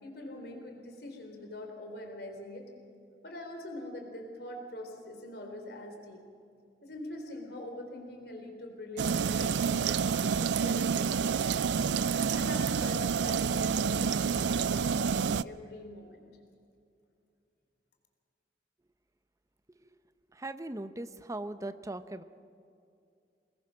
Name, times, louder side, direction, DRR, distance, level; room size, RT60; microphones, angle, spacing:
voice 1, 0.0-2.6 3.2-6.2 6.8-11.6 12.2-16.2, left 1 dB, 65° left, 3 dB, 3.8 m, -43 dB
sound 1, 9.0-15.4, right 6 dB, 85° right, 0.4 m, -28 dB
voice 2, 20.3-22.2, right 2 dB, 20° right, 11 dB, 0.8 m, -39 dB
24.5 x 20.5 x 6.3 m, 2.5 s
head